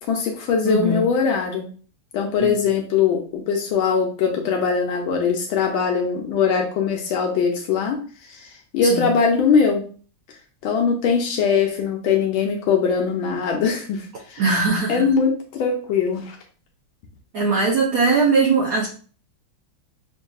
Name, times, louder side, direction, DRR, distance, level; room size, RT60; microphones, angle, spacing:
voice 1, 0.1-1.7 2.1-8.0 8.3-9.8 10.6-14.4 14.9-16.4, left 6 dB, 80° left, 1 dB, 1.5 m, -21 dB
voice 2, 0.6-1.1 2.4-2.6 8.8-9.1 14.4-15.0 17.3-18.9, right 4 dB, 65° right, -2 dB, 0.9 m, -20 dB
5.8 x 2.7 x 2.3 m, 0.40 s
omnidirectional pair, 2.3 m